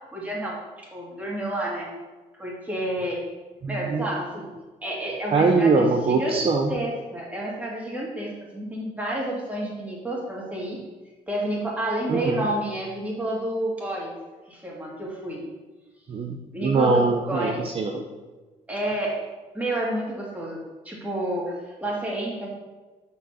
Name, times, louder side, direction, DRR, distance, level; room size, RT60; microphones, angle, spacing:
voice 1, 0.1-0.6 0.9-1.9 2.4-3.2 3.7-4.5 4.8-6.4 6.7-10.8 11.3-14.1 14.5-15.4 16.5-17.6 18.7-19.2 19.5-20.6 20.8-22.5, right 1 dB, 10° right, -4 dB, 2.5 m, -30 dB
voice 2, 3.6-4.0 5.3-6.7 12.1-12.5 16.1-18.0, right 3 dB, 45° right, 3 dB, 0.7 m, -22 dB
6.3 x 4.7 x 5.6 m, 1.2 s
cardioid pair, 105°, 14 cm